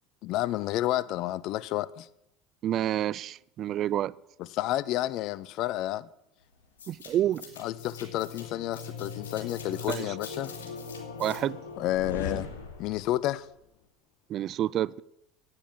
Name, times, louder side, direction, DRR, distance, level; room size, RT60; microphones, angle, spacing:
voice 1, 0.2-2.1 4.4-6.1 7.6-10.5 11.8-12.5 12.8-13.5, left 15 dB, 55° left, 0.5 m, -30 dB
voice 2, 2.6-4.1 6.9-7.4 9.9-10.1 11.2-11.6 14.3-15.0, right 12 dB, 50° right, 0.4 m, -28 dB
sound 1, 6.8-13.1, left 5 dB, 85° left, 2.7 m, -40 dB
9.9 x 9.3 x 7.4 m
hypercardioid pair, 80°, 0 cm